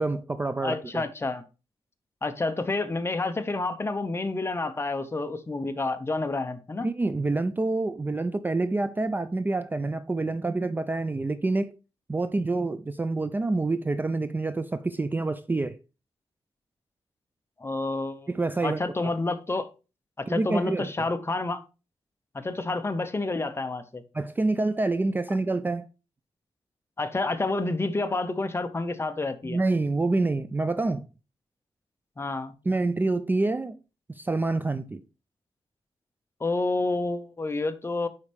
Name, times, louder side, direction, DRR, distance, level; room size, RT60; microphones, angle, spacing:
voice 1, 0.0-1.0 6.8-11.7 12.1-15.8 18.3-18.8 20.3-21.1 24.1-25.9 29.4-31.1 32.7-33.8 34.1-35.0, right 2 dB, 20° right, 0.3 m, -27 dB
voice 2, 0.6-1.4 2.2-6.9 17.6-18.3 18.6-19.7 20.2-21.6 22.3-24.0 27.0-29.6 32.2-32.5 36.4-38.1, left 2 dB, 25° left, 0.7 m, -29 dB
9.5 x 4.3 x 3.4 m
wide cardioid pair, 125°, 11 cm